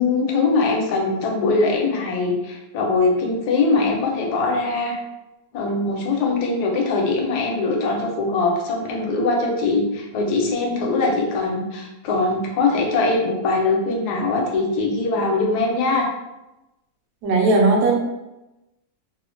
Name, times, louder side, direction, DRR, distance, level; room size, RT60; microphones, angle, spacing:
voice 1, 0.0-5.0 5.5-16.1, left 3 dB, 80° left, 0 dB, 1.1 m, -21 dB
voice 2, 17.2-18.0, right 3 dB, 80° right, 0 dB, 1.2 m, -17 dB
3.0 x 2.1 x 2.5 m, 0.98 s
omnidirectional pair, 1.7 m